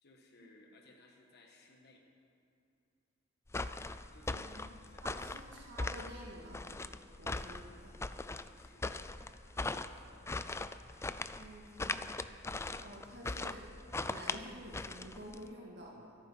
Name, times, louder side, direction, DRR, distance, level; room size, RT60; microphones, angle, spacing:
voice 1, 0.0-2.0 4.1-5.4 8.5-9.3 9.7-10.5, left 2 dB, 55° left, 1 dB, 1.5 m, -63 dB
sound 1, 3.5-15.5, left 3 dB, 15° left, 0.4 m, -40 dB
voice 2, 4.3-4.7 5.0-6.8 7.2-8.0 11.4-12.1 12.8-13.6 14.1-16.2, equal, 60° right, -3 dB, 2.0 m, -50 dB
24.0 x 9.3 x 5.6 m, 2.6 s
head